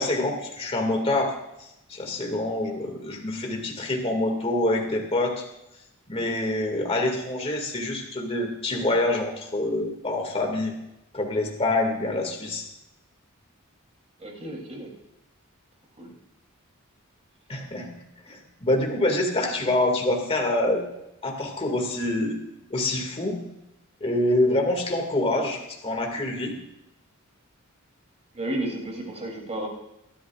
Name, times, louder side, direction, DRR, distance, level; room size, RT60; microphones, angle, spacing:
voice 1, 0.0-1.3 1.9-5.4 6.1-10.7 11.1-12.6 17.5-17.9 18.3-20.8 21.2-22.3 22.7-23.4 24.0-26.5, left 1 dB, 30° left, 2 dB, 2.2 m, -26 dB
voice 2, 14.2-14.9 16.0-16.1 19.3-19.4 28.3-29.7, right 1 dB, 30° right, 1 dB, 3.2 m, -32 dB
23.5 x 12.5 x 2.5 m, 0.87 s
head